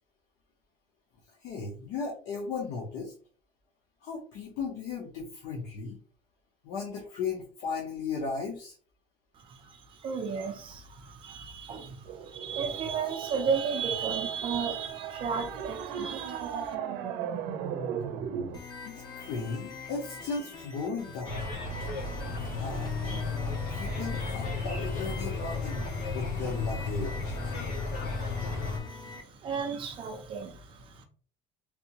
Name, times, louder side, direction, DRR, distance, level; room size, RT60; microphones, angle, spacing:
voice 1, 1.4-3.1 4.0-6.0 6.6-8.7 18.9-21.6 22.6-22.9 23.7-27.4, left 4 dB, 65° left, 0.9 m, -36 dB
voice 2, 9.3-16.7 28.9-31.0, right 6 dB, 35° right, 0.5 m, -34 dB
sound 1, 12.0-18.6, right 8 dB, 80° right, 0.6 m, -37 dB
sound 2, 18.5-29.2, left 3 dB, 25° left, 0.6 m, -45 dB
sound 3, 21.2-28.8, left 3 dB, 90° left, 1.6 m, -33 dB
3.5 x 2.6 x 2.9 m
cardioid pair, 175°, 16 cm